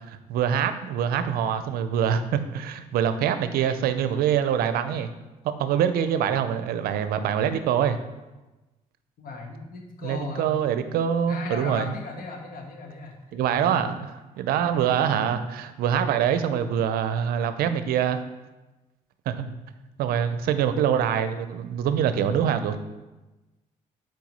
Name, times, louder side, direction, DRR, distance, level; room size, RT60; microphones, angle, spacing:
voice 1, 0.1-5.1 5.6-8.0 10.0-11.9 13.3-13.9 14.4-18.2 19.3-19.5 20.0-22.8, right 8 dB, 80° right, 11 dB, 0.5 m, -24 dB
voice 2, 9.2-10.5 11.3-13.8 14.8-15.1 19.3-19.6 20.3-20.6, left 3 dB, 70° left, 1 dB, 1.3 m, -38 dB
4.7 x 4.6 x 5.3 m, 1.1 s
supercardioid pair, 65°, 15 cm